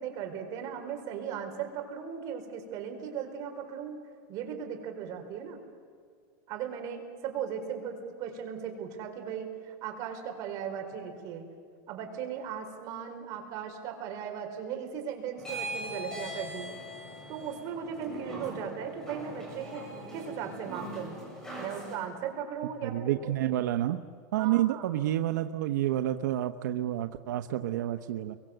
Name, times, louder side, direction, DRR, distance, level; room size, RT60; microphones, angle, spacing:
voice 1, 0.0-4.0 4.3-5.6 6.5-11.5 11.9-16.7 17.3-19.8 20.1-21.2 21.5-23.6 24.3-24.9, right 8 dB, 35° right, 4 dB, 4.5 m, -37 dB
sound 1, 15.4-21.9, right 1 dB, 5° left, 7.9 m, -41 dB
voice 2, 22.8-24.0 24.3-28.4, right 13 dB, 85° right, 7 dB, 1.0 m, -29 dB
29.5 x 23.5 x 8.0 m, 2.1 s
supercardioid pair, 170°, 9 cm